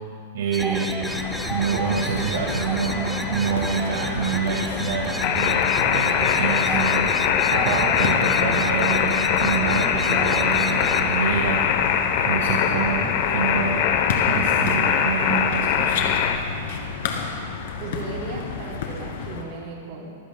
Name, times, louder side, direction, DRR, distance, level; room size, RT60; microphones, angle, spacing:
voice 1, 0.3-1.2 1.5-7.2 7.5-11.8 12.3-13.9 14.3-16.1, right 5 dB, 75° right, -1 dB, 1.7 m, -27 dB
sound 1, 0.5-11.2, equal, ahead, 0.6 m, -32 dB
sound 2, 1.0-19.4, left 5 dB, 65° left, 2.2 m, -32 dB
sound 3, 5.2-16.4, left 8 dB, 45° left, 0.8 m, -22 dB
voice 2, 17.8-20.1, right 3 dB, 45° right, -2 dB, 3.6 m, -35 dB
24.5 x 15.0 x 2.3 m, 2.4 s
supercardioid pair, 160°, 0 cm